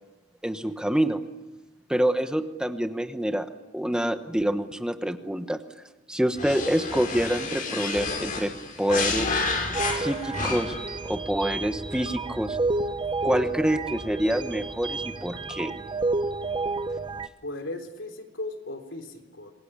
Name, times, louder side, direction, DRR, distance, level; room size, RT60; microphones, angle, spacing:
voice 1, 0.4-1.2 1.9-3.5 3.7-5.6 6.1-8.5 8.8-9.4 9.9-10.8 11.0-12.6 13.2-15.7, right 1 dB, 5° right, 8 dB, 1.1 m, -26 dB
sound 1, 6.4-10.9, left 3 dB, 45° left, 5.3 m, -30 dB
sound 2, 9.7-17.3, right 3 dB, 25° right, 0.8 m, -30 dB
voice 2, 17.4-19.5, left 2 dB, 75° left, 4 dB, 3.5 m, -37 dB
27.0 x 22.0 x 8.8 m, 1.1 s
head